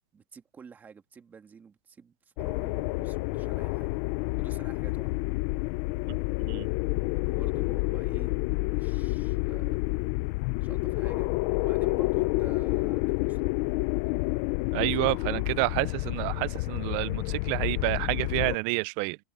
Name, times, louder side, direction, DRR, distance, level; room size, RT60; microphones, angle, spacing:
voice 1, 0.1-3.9 4.4-5.1 7.3-10.1 10.6-11.3 11.6-13.5 14.7-15.6, right 6 dB, 10° right, 2.2 m, -50 dB
sound 1, 2.4-18.6, left 23 dB, 30° left, 0.5 m, -29 dB
voice 2, 6.1-6.7 14.7-19.2, right 26 dB, 30° right, 0.4 m, -29 dB
supercardioid pair, 170°, 15 cm